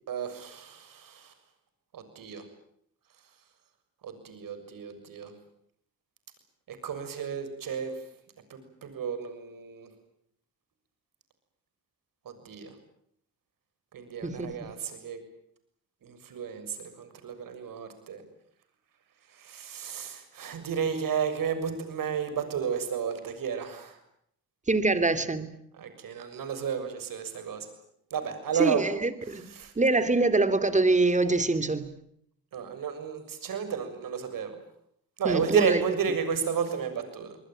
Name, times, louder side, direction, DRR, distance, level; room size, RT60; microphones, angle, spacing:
voice 1, 0.1-1.3 1.9-2.4 4.0-5.3 6.7-8.0 8.5-9.9 12.2-12.7 13.9-15.2 16.0-18.2 19.3-24.0 25.7-27.7 28.1-28.8 29.2-29.7 32.5-34.6 35.2-37.4, right 7 dB, 65° right, 9 dB, 6.9 m, -32 dB
voice 2, 14.2-14.7 24.7-25.5 28.6-29.5 29.8-31.9 35.2-35.8, right 3 dB, 20° right, 11 dB, 3.2 m, -24 dB
26.5 x 21.0 x 9.1 m, 0.69 s
cardioid pair, 75°, 36 cm